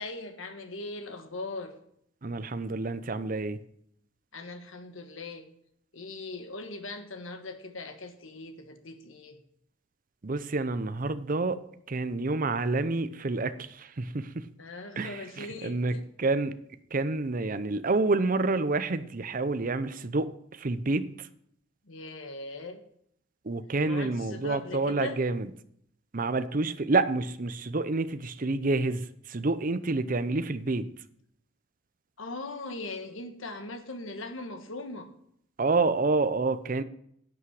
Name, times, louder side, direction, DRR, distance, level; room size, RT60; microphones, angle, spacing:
voice 1, 0.0-1.8 4.3-5.5 5.9-9.4 14.6-16.1 21.8-22.8 23.8-25.2 32.2-35.1, left 2 dB, 80° left, 7 dB, 1.5 m, -40 dB
voice 2, 2.2-3.6 10.2-11.6 11.9-14.4 15.0-16.5 16.9-21.3 23.4-25.5 26.1-30.9 35.6-36.8, right 3 dB, 40° right, 13 dB, 0.6 m, -28 dB
11.0 x 8.4 x 4.9 m, 0.70 s
head